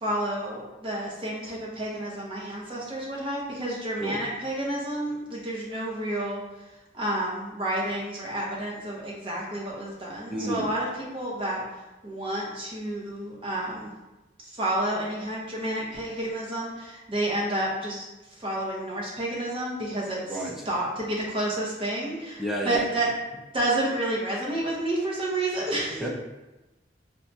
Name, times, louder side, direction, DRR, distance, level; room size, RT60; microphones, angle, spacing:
voice 1, 0.0-6.4 6.9-10.9 11.1-11.6 12.0-13.9 14.6-18.0 18.4-20.2 20.7-23.1 23.5-26.1, right 1 dB, 30° right, -4 dB, 0.8 m, -30 dB
voice 2, 10.3-10.7 20.2-20.7 22.4-23.0 25.9-26.1, right 1 dB, ahead, -3 dB, 0.5 m, -31 dB
4.4 x 2.2 x 2.7 m, 1.0 s
head